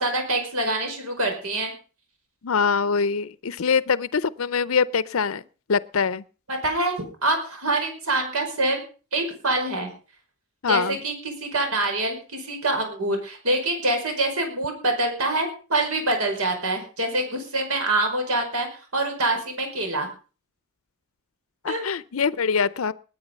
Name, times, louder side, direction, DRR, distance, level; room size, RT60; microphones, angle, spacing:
voice 1, 0.0-1.7 6.5-8.8 9.1-9.9 10.7-18.7 18.9-20.1 21.7-21.8, right 2 dB, 85° right, 5.4 m, -25 dB
voice 2, 2.4-5.4 5.7-6.2 10.6-11.0 21.6-22.9, left 5 dB, 70° left, 0.6 m, -23 dB
20.0 x 9.5 x 5.3 m
head